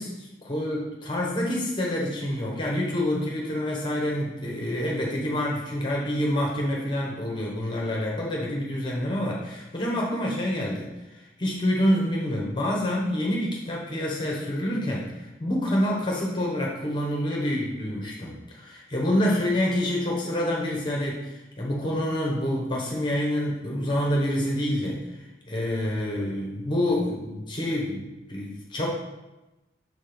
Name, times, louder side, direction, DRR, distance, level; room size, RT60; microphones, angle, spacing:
voice 1, 0.0-25.1 25.5-28.9, left 1 dB, 25° left, -2 dB, 0.9 m, -27 dB
6.4 x 4.3 x 3.4 m, 1.0 s
head